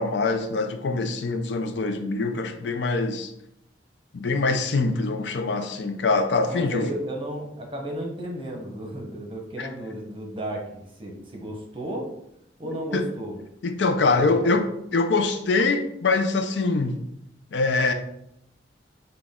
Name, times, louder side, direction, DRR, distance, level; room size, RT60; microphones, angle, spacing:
voice 1, 0.0-3.3 4.1-6.9 9.6-9.7 12.9-13.0 13.6-17.0 17.5-17.9, left 3 dB, 70° left, 0.5 m, -24 dB
voice 2, 6.5-12.1 12.6-13.4 14.0-14.5, right 1 dB, 30° right, 1.0 m, -33 dB
6.0 x 2.3 x 3.6 m
head